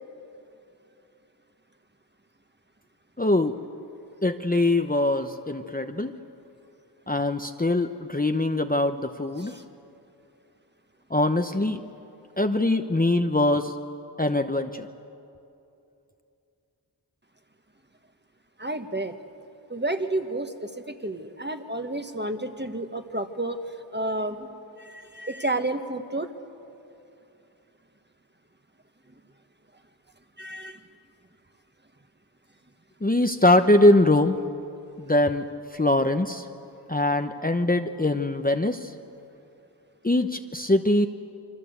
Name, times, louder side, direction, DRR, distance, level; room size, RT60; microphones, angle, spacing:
voice 1, 3.2-3.6 4.2-6.2 7.1-9.5 11.1-11.8 12.4-13.7 14.2-14.9 33.0-34.4 35.0-35.4 35.7-36.5 36.9-38.9 40.0-41.1, left 1 dB, 20° left, 6 dB, 0.9 m, -22 dB
voice 2, 18.6-19.1 19.7-23.6 23.9-26.3 30.4-30.8, right 2 dB, 25° right, 7 dB, 1.6 m, -31 dB
27.0 x 24.5 x 8.1 m, 2.7 s
wide cardioid pair, 55°, 41 cm